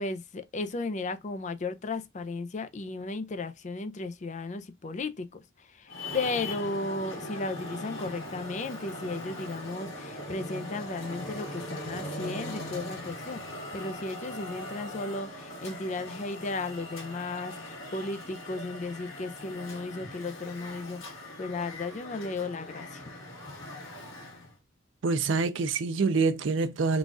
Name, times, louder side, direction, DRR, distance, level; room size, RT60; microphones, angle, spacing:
voice 1, 0.0-23.1, left 3 dB, 35° left, 0.4 m, -35 dB
Traffic noise roadway noise, 5.9-24.5, left 1 dB, 85° left, 1.8 m, -40 dB
voice 2, 25.0-27.0, right 4 dB, 70° right, 0.5 m, -26 dB
3.9 x 2.3 x 3.5 m
head